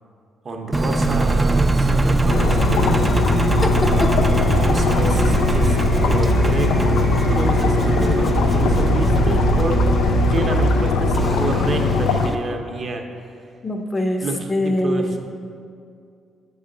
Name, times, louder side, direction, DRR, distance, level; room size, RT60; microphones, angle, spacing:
voice 1, 0.4-3.2 4.6-6.7 7.3-9.8 10.3-13.3 14.2-15.2, right 2 dB, 45° right, 3 dB, 0.7 m, -29 dB
Engine, 0.7-12.4, right 2 dB, 20° right, 0.4 m, -21 dB
sound 1, 2.3-12.3, left 4 dB, 85° left, 0.4 m, -21 dB
voice 2, 3.6-4.1 12.2-12.4 13.6-15.2, left 1 dB, 25° left, 5 dB, 0.7 m, -23 dB
7.6 x 5.5 x 3.8 m, 2.3 s
cardioid pair, 90°, 0 cm